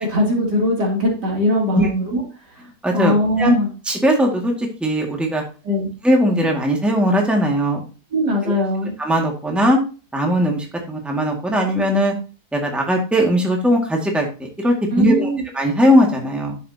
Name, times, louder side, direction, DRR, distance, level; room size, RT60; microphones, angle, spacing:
voice 1, 0.1-2.2 2.9-3.7 5.6-5.9 8.1-9.0 14.9-15.4, left 1 dB, 85° right, -1 dB, 3.5 m, -20 dB
voice 2, 2.8-3.5 3.9-5.4 6.0-7.8 8.4-8.6 9.0-9.8 10.1-12.1 12.5-15.3 15.5-16.6, equal, ahead, 1 dB, 1.9 m, -19 dB
10.5 x 7.5 x 2.8 m, 0.34 s
omnidirectional pair, 1.8 m